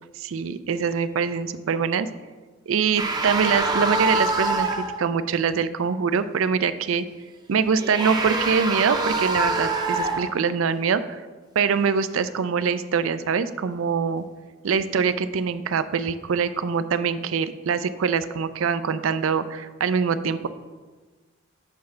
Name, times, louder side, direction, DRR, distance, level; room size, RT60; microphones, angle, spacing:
voice 1, 0.1-2.1 2.7-7.1 7.5-11.2 11.6-14.2 14.6-20.5, right 6 dB, 90° right, 13 dB, 0.4 m, -24 dB
sound 1, 3.0-5.0 7.7-10.4, right 2 dB, 20° right, 0.6 m, -25 dB
9.4 x 3.2 x 5.8 m, 1.3 s
head